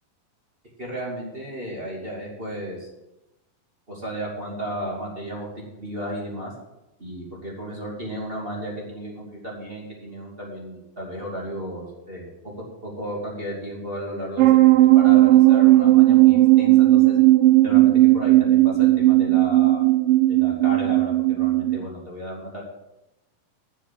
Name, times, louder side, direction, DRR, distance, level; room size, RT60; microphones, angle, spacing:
voice 1, 0.8-2.9 3.9-6.5 7.0-12.5 12.8-17.2 17.6-19.9 20.3-22.6, equal, 15° right, -4 dB, 2.3 m, -34 dB
sound 1, 14.4-21.8, right 16 dB, 80° right, 2.2 m, -16 dB
9.2 x 7.2 x 7.7 m, 0.94 s
omnidirectional pair, 4.3 m